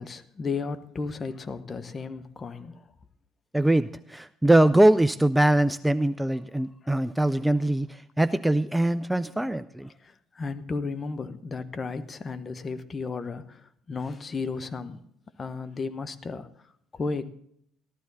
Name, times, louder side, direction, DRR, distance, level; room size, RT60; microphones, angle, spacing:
voice 1, 0.0-2.9 6.8-7.0 9.9-15.0 15.4-16.5 16.9-17.3, left 4 dB, 30° left, 0.9 m, -34 dB
voice 2, 3.5-7.9 8.2-9.9, right 1 dB, 5° right, 0.4 m, -22 dB
14.0 x 12.5 x 4.1 m
figure-of-eight pair, 55°, 0 cm